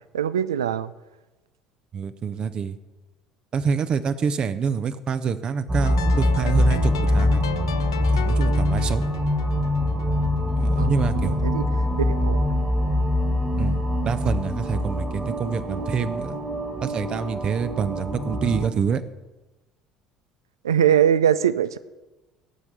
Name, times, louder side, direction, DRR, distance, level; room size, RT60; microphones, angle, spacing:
voice 1, 0.1-0.9 10.8-11.7 12.1-12.5 20.6-21.8, right 9 dB, 80° right, 16 dB, 0.4 m, -22 dB
voice 2, 1.9-2.8 3.5-7.4 8.1-9.0 10.5-11.4 13.6-16.4 16.8-19.0, right 6 dB, 40° right, 12 dB, 0.7 m, -26 dB
sound 1, 5.7-18.7, left 1 dB, 20° right, 1.7 m, -23 dB
sound 2, 5.8-10.9, left 10 dB, 80° left, 0.4 m, -36 dB
16.5 x 5.9 x 6.7 m, 1.1 s
figure-of-eight pair, 60°, 2 cm